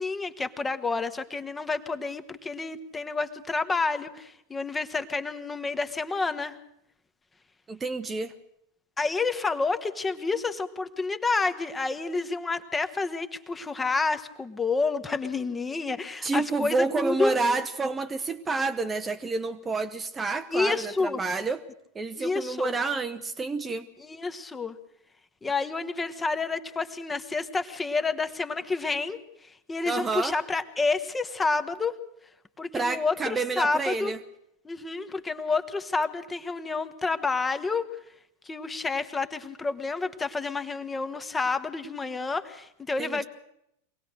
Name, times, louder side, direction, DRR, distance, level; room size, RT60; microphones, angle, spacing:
voice 1, 0.0-6.6 9.0-17.3 20.5-21.2 22.2-22.7 24.0-24.8 25.4-29.2 29.7-31.9 32.6-34.1 34.6-37.9 38.4-43.2, left 4 dB, 15° left, 10 dB, 1.3 m, -29 dB
voice 2, 7.7-8.3 16.2-21.6 21.9-23.9 29.9-30.4 32.7-34.2 43.0-43.2, right 3 dB, 15° right, 9 dB, 0.9 m, -29 dB
24.0 x 18.5 x 6.6 m, 0.78 s
figure-of-eight pair, 90°, 0 cm